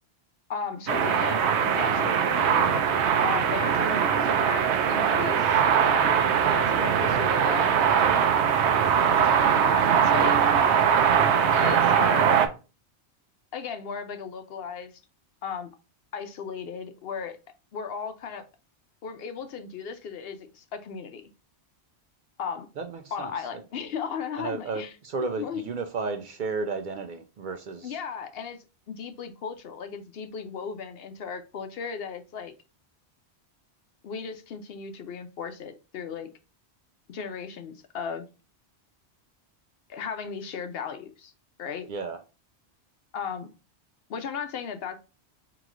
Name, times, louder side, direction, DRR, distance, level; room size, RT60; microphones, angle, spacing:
voice 1, 0.5-2.8 3.2-8.1 8.7-8.8 9.2-10.4 11.5-12.4 13.5-15.0 15.4-15.7 16.1-17.4 17.7-18.5 19.0-21.2 22.4-22.7 23.1-24.9 25.4-25.7 27.8-28.6 28.9-32.5 34.0-36.3 37.1-38.3 39.9-41.3 41.6-41.9 43.1-43.5 44.1-45.0, left 6 dB, 65° left, 0.8 m, -36 dB
sound 1, 0.9-12.5, right 7 dB, 80° right, 0.9 m, -21 dB
voice 2, 2.0-2.8 6.8-6.9 22.8-23.3 24.4-28.0 41.9-42.2, right 4 dB, 60° right, 0.6 m, -33 dB
4.8 x 3.0 x 2.4 m
omnidirectional pair, 1.1 m